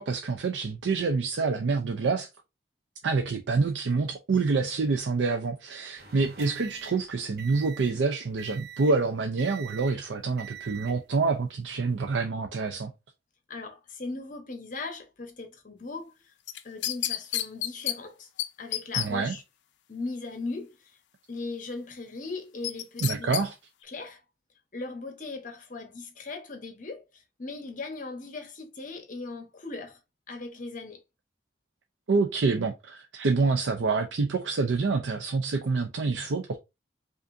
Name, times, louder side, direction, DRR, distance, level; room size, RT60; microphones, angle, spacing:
voice 1, 0.0-2.3 3.0-12.9 19.0-19.4 23.0-23.5 32.1-36.6, right 4 dB, 85° right, 0.5 m, -27 dB
sound 1, 6.0-8.0 8.4-9.0 9.4-10.0 10.4-11.0 11.8-12.1, right 8 dB, 60° right, 0.9 m, -44 dB
voice 2, 13.5-16.1 16.6-18.3 18.6-19.4 19.9-20.7 21.3-23.4 23.9-24.2 24.7-30.0 30.3-31.0, left 3 dB, 45° left, 0.9 m, -38 dB
sound 2, 16.5-18.0 18.4-18.5 18.7-19.1 22.6-23.4 23.8-23.9, left 12 dB, 75° left, 0.4 m, -29 dB
5.0 x 2.5 x 2.6 m
head